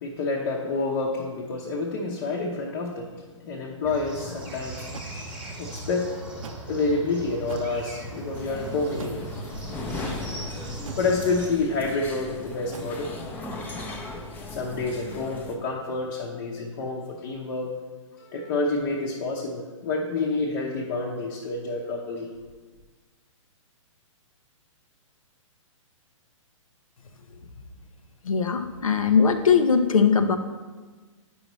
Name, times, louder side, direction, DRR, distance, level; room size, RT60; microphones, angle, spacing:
voice 1, 0.0-6.1 6.7-9.2 11.0-13.1 14.5-17.7 18.2-22.3, left 3 dB, 45° left, -2 dB, 0.8 m, -28 dB
sound 1, 3.8-11.5, right 1 dB, 5° right, 1.3 m, -38 dB
sound 2, 4.9-5.1 6.4-6.7 7.4-7.8 8.9-9.3 10.8-11.2 12.7-12.8, right 5 dB, 80° right, 0.6 m, -40 dB
sound 3, 8.3-15.6, left 2 dB, 10° left, 0.6 m, -37 dB
voice 2, 28.2-30.4, left 6 dB, 90° left, 8 dB, 0.7 m, -20 dB
8.6 x 5.6 x 3.1 m, 1.4 s
hypercardioid pair, 140°, 17 cm